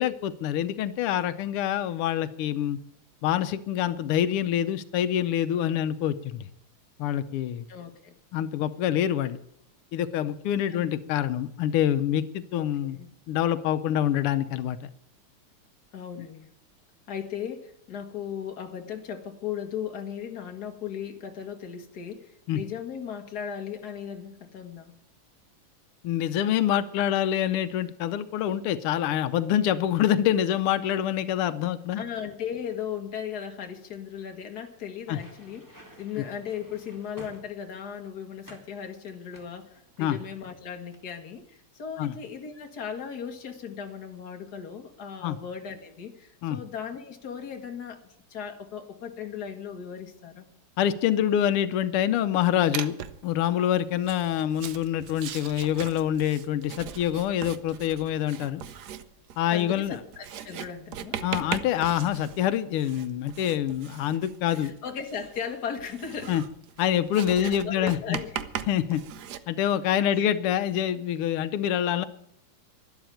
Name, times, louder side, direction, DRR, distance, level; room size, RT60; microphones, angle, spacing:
voice 1, 0.0-2.8 3.2-6.5 7.0-7.6 8.3-9.4 9.9-13.0 13.3-14.8 22.5-22.6 26.0-32.0 35.1-35.2 40.0-40.2 42.0-42.1 45.2-45.4 46.4-46.6 50.8-53.0 53.2-58.6 59.4-60.0 61.2-64.7 66.3-66.4 66.8-68.2 68.7-69.0 69.5-72.0, left 10 dB, 90° left, 12 dB, 1.7 m, -26 dB
voice 2, 7.7-8.2 10.7-10.9 12.6-13.1 15.9-16.5 17.1-24.9 32.0-50.5 59.5-61.2 64.5-66.3 67.4-68.5 70.0-70.3, left 8 dB, 50° left, 4 dB, 2.0 m, -37 dB
sound 1, 35.0-37.9 38.4-38.7 39.3-40.5 40.8-41.1, equal, 10° right, 2.4 m, -51 dB
Writing, 52.7-53.3 54.0-69.4, right 9 dB, 60° right, 1.2 m, -39 dB
12.0 x 11.5 x 9.0 m, 0.75 s
omnidirectional pair, 2.4 m